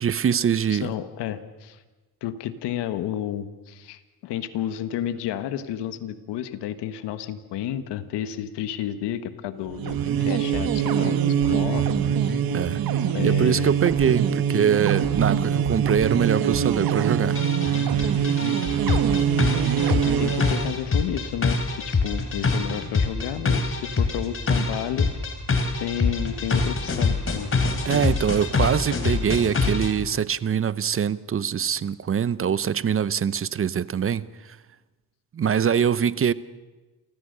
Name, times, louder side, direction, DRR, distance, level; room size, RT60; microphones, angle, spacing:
voice 1, 0.0-0.9 12.5-12.8 13.2-14.3 14.5-17.4 27.8-34.6 35.3-36.3, right 8 dB, 35° right, 0.7 m, -23 dB
voice 2, 0.7-1.8 2.2-12.4 13.1-13.8 20.1-21.6 21.9-25.1 25.8-27.5, left 11 dB, 90° left, 1.4 m, -31 dB
sound 1, 9.7-20.7, right 8 dB, 60° right, 1.6 m, -23 dB
sound 2, 17.4-29.9, left 4 dB, 30° left, 3.2 m, -25 dB
29.0 x 14.5 x 6.7 m
cardioid pair, 105°, 40 cm